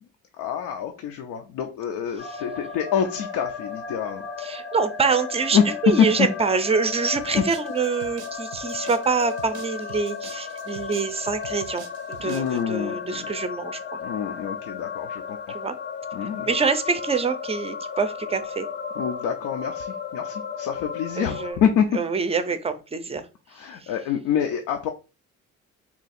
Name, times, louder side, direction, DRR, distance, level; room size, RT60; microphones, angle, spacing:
voice 1, 0.4-4.3 5.5-5.6 6.0-6.3 7.4-7.5 12.2-13.3 14.0-15.4 16.1-16.6 19.0-21.9 23.5-24.9, left 8 dB, 85° left, 4 dB, 0.5 m, -26 dB
sound 1, 2.2-21.5, left 6 dB, 35° left, 0.6 m, -35 dB
voice 2, 4.4-14.0 15.5-15.7 16.5-18.7 21.2-21.6 21.9-23.2 23.8-23.9, right 5 dB, 20° right, 10 dB, 0.4 m, -25 dB
sound 2, 7.1-12.6, right 9 dB, 80° right, 0.5 m, -46 dB
2.8 x 2.3 x 4.1 m, 0.33 s
cardioid pair, 90°, 30 cm